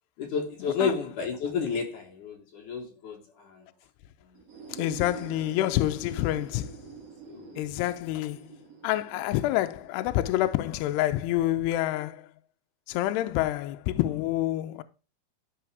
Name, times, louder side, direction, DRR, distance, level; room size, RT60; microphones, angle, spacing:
voice 1, 0.2-3.7 4.2-4.8 7.3-7.6, left 5 dB, 60° left, 2.3 m, -32 dB
sound 1, 4.3-12.0, right 6 dB, 40° right, 2.9 m, -46 dB
voice 2, 4.7-6.8 7.6-8.6 8.8-12.3 12.9-14.8, left 14 dB, 80° left, 2.5 m, -27 dB
13.5 x 5.5 x 3.3 m
omnidirectional pair, 5.4 m